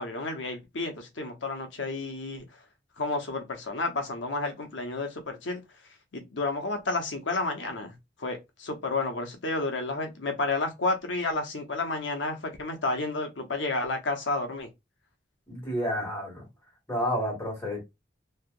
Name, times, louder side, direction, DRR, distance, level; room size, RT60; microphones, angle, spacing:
voice 1, 0.0-2.4 3.0-5.6 6.1-7.9 8.2-14.7, left 3 dB, 85° left, 0.9 m, -31 dB
voice 2, 15.5-16.4 16.9-17.8, equal, 15° left, 1.8 m, -30 dB
3.3 x 2.8 x 2.5 m
head